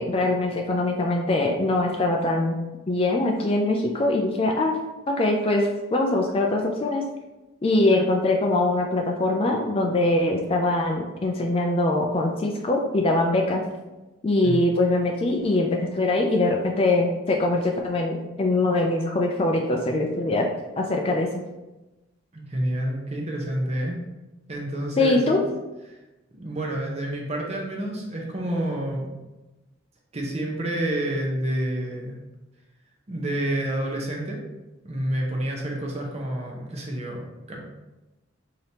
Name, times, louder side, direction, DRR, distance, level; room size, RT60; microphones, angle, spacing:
voice 1, 0.0-2.6 2.9-4.8 5.1-7.0 7.6-13.6 14.2-20.5 20.8-21.3 25.0-25.4, left 2 dB, 25° left, 1 dB, 0.3 m, -23 dB
voice 2, 22.3-24.0 24.5-25.5 25.9-26.0 26.3-29.1 30.1-32.1 33.1-34.4 34.8-37.6, right 1 dB, 30° right, -1 dB, 0.7 m, -29 dB
4.9 x 2.8 x 2.8 m, 1.1 s
head